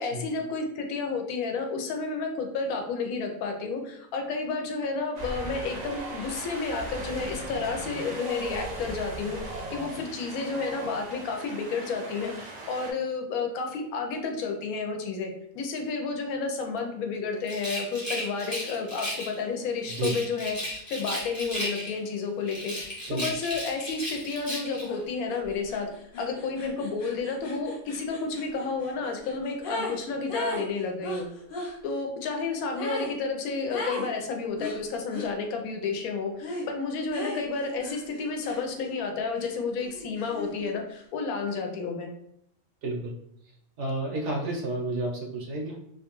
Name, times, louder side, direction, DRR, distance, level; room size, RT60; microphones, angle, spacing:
voice 1, 0.0-22.7 23.1-25.9 26.2-31.3 31.8-42.1, left 4 dB, 85° left, 3 dB, 1.0 m, -31 dB
Wind, 5.1-12.9, right 2 dB, 90° right, 0.3 m, -38 dB
Rattle, 17.4-19.4 19.8-22.1 22.4-24.9, equal, 15° left, 0.7 m, -35 dB
sound 1, 24.9-25.0 25.3-30.0 30.3-31.8 32.8-33.2 33.7-34.1 34.6-35.3 36.4-36.7 37.1-39.0 39.4-40.7, left 1 dB, 55° left, 0.6 m, -38 dB
voice 2, 42.8-43.1 43.8-45.8, right 2 dB, 65° right, 0 dB, 0.8 m, -30 dB
2.5 x 2.2 x 2.9 m, 0.73 s
omnidirectional pair, 1.5 m